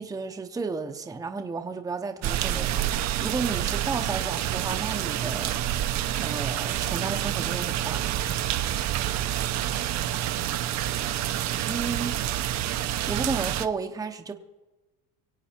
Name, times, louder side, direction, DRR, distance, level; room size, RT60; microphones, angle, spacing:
voice 1, 0.0-5.6 6.2-8.0 11.7-12.1 13.1-14.3, right 4 dB, 10° right, 4 dB, 0.7 m, -33 dB
sound 1, 2.2-13.7, right 12 dB, 45° right, 0.6 m, -28 dB
voice 2, 9.2-11.3, right 10 dB, 85° right, 0 dB, 4.4 m, -50 dB
24.5 x 8.3 x 4.3 m, 1.1 s
cardioid pair, 155°, 41 cm